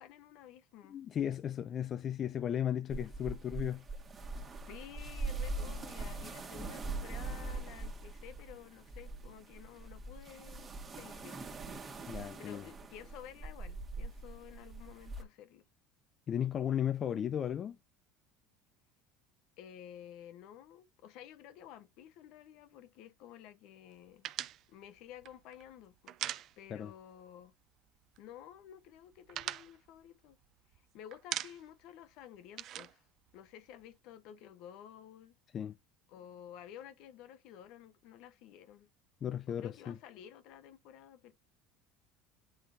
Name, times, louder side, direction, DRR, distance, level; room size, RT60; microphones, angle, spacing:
voice 1, 0.0-1.0 4.7-11.4 12.4-15.6 19.6-24.3 24.7-26.2 26.6-27.5 28.2-30.4 30.9-33.0 33.3-35.3 36.1-38.9 39.5-41.3, left 10 dB, 65° left, 1.0 m, -52 dB
voice 2, 0.9-3.8 12.1-12.7 16.3-17.8 26.7-26.9 35.5-35.7 39.2-40.0, left 9 dB, 40° left, 0.5 m, -35 dB
sound 1, 2.9-15.2, right 3 dB, 25° right, 1.5 m, -42 dB
sound 2, 24.2-27.0 27.3-27.5 27.8-28.4 28.8-30.8 31.1-31.9 32.1-33.9, right 12 dB, 50° right, 0.4 m, -42 dB
9.7 x 3.8 x 2.6 m
supercardioid pair, 100°, 0 cm